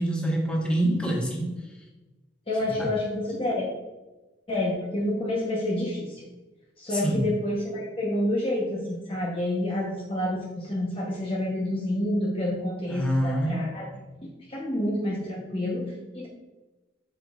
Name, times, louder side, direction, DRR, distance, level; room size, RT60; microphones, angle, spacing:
voice 1, 0.0-1.7 6.9-7.2 12.9-13.6, right 1 dB, 5° left, -4 dB, 1.4 m, -26 dB
voice 2, 2.5-3.7 4.5-6.2 6.8-13.9 14.5-16.3, left 1 dB, 30° left, -4 dB, 1.0 m, -28 dB
7.6 x 6.7 x 2.4 m, 1.1 s
head